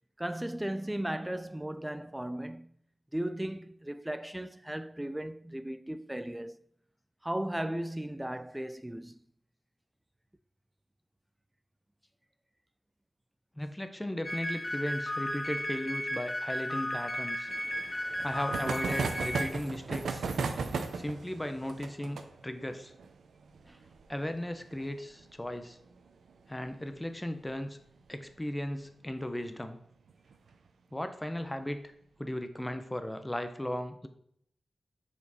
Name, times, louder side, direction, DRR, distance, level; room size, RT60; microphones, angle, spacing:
voice 1, 0.2-2.7 3.1-6.6 7.2-9.2 23.7-23.8, right 1 dB, 10° right, 0.4 m, -36 dB
voice 2, 13.6-17.5 18.2-20.3 20.9-22.2 22.4-22.9 24.1-25.8 26.5-27.8 28.1-29.8 30.9-31.9 32.2-34.1, left 1 dB, 15° left, 0.8 m, -36 dB
sound 1, 14.2-19.5, equal, 40° left, 1.0 m, -34 dB
sound 2, 17.5-26.7 26.9-27.0 27.3-27.4 27.7-27.8 29.2-29.4 30.1-30.5, right 4 dB, 85° right, 0.6 m, -37 dB
6.8 x 4.4 x 4.3 m
cardioid pair, 45°, 0 cm